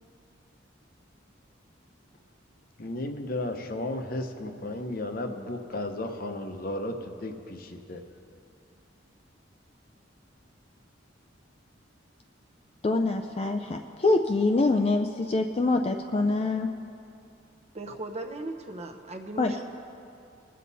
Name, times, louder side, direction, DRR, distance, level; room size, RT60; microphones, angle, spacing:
voice 1, 2.8-8.0, left 1 dB, 50° left, 5 dB, 0.8 m, -34 dB
voice 2, 12.8-16.7 19.4-19.5, left 2 dB, 30° left, 5 dB, 0.4 m, -25 dB
voice 3, 17.7-19.6, right 2 dB, 35° right, 5 dB, 0.8 m, -37 dB
21.0 x 7.5 x 4.1 m, 2.5 s
head